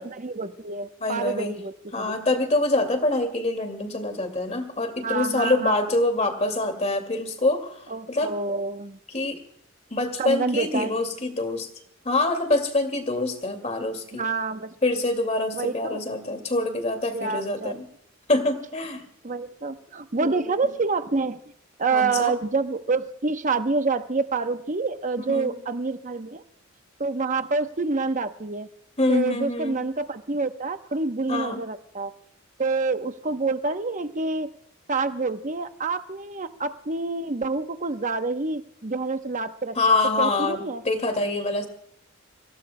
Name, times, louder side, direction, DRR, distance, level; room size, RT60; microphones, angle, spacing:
voice 1, 0.0-2.1 5.0-5.8 7.9-9.0 10.2-11.0 14.1-14.8 15.5-16.0 17.1-17.7 19.2-21.4 21.8-26.4 27.0-28.7 29.1-32.1 32.6-34.5 34.9-40.8, right 3 dB, 40° right, 9 dB, 0.9 m, -27 dB
voice 2, 1.0-1.5 1.9-7.8 8.1-8.3 9.1-9.4 9.9-11.7 12.0-14.2 14.8-17.9 18.3-19.0 20.2-20.5 21.9-22.3 25.3-25.5 29.0-29.8 31.3-31.6 39.8-41.7, left 2 dB, 35° left, 7 dB, 2.2 m, -25 dB
30.0 x 17.0 x 2.2 m, 0.70 s
head